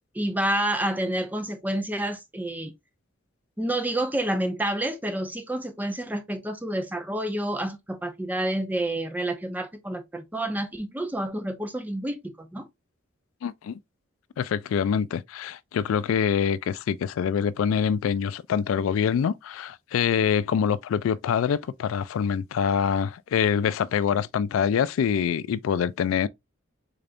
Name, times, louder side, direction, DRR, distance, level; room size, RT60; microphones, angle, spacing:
voice 1, 0.1-2.7 3.6-12.7, right 1 dB, 10° right, 0.4 m, -29 dB
voice 2, 13.4-13.8 14.4-26.3, left 7 dB, 80° left, 0.3 m, -25 dB
3.8 x 3.4 x 2.4 m
head